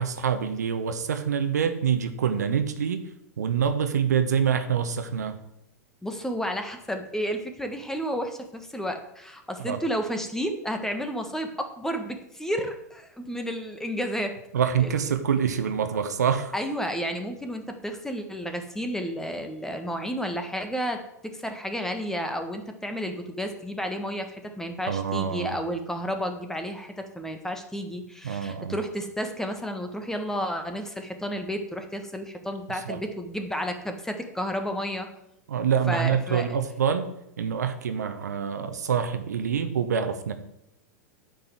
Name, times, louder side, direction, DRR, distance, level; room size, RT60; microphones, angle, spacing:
voice 1, 0.0-3.0 3.4-5.4 9.6-9.8 14.5-16.5 24.9-25.6 28.2-28.8 32.7-33.0 35.5-37.1 37.4-40.3, right 7 dB, 75° right, 9 dB, 1.1 m, -26 dB
voice 2, 6.0-14.3 14.8-14.9 16.5-35.1 35.9-36.5, equal, 5° left, 6 dB, 1.5 m, -31 dB
9.2 x 5.4 x 7.9 m, 0.82 s
figure-of-eight pair, 95°, 9 cm